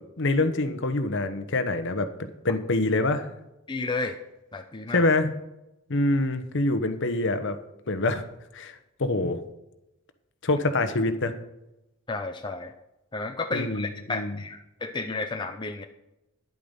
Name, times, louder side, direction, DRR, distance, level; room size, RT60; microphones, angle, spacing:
voice 1, 0.2-2.1 2.4-3.3 4.9-5.3 5.9-7.6 7.9-8.2 8.5-9.4 10.4-11.3 13.5-14.4, left 2 dB, 55° left, 9 dB, 1.1 m, -25 dB
voice 2, 3.7-4.2 4.5-5.0 12.1-12.7 13.1-15.9, left 3 dB, 20° left, 4 dB, 0.6 m, -32 dB
10.5 x 8.6 x 5.5 m, 0.91 s
head